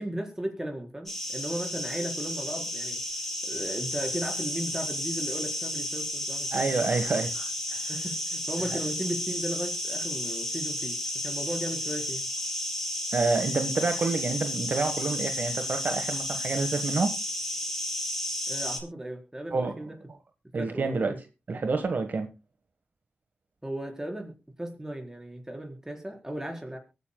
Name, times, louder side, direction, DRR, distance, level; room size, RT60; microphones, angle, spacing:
voice 1, 0.0-3.0 3.4-6.6 7.9-11.0 11.2-12.3 18.5-20.0 20.6-21.2 23.6-24.3 24.6-26.8, right 1 dB, 15° right, 2 dB, 4.6 m, -36 dB
sound 1, 1.1-18.8, left 1 dB, 5° left, 6.5 m, -32 dB
voice 2, 6.5-7.8 13.1-17.1 19.5-19.7 20.5-21.2 21.5-22.3, right 3 dB, 65° right, 6 dB, 1.5 m, -28 dB
23.0 x 9.9 x 2.3 m, 0.28 s
cardioid pair, 60°, 3 cm